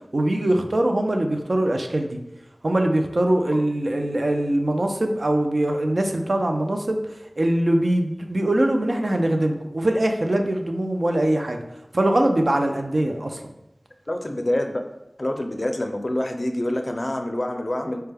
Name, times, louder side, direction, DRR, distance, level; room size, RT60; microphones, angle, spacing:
voice 1, 0.1-2.2 2.6-7.0 7.4-11.6 11.9-13.4, right 1 dB, 70° right, 4 dB, 0.4 m, -22 dB
voice 2, 14.1-14.8 15.2-18.0, left 1 dB, 50° left, 5 dB, 0.4 m, -26 dB
4.3 x 2.2 x 3.3 m, 0.91 s
wide cardioid pair, 50°, 0 cm